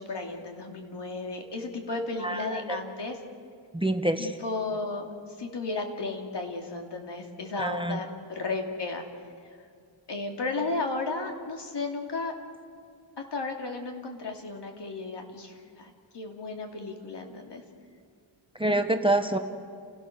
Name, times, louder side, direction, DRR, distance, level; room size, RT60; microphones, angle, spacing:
voice 1, 0.0-3.2 4.2-5.1 5.4-9.0 10.1-12.3 13.3-17.6, left 3 dB, 60° left, 3 dB, 2.8 m, -34 dB
voice 2, 2.2-2.8 3.7-4.3 7.6-8.0 18.6-19.4, right 1 dB, 10° right, 7 dB, 0.9 m, -26 dB
29.5 x 17.0 x 6.7 m, 2.2 s
wide cardioid pair, 150°, 46 cm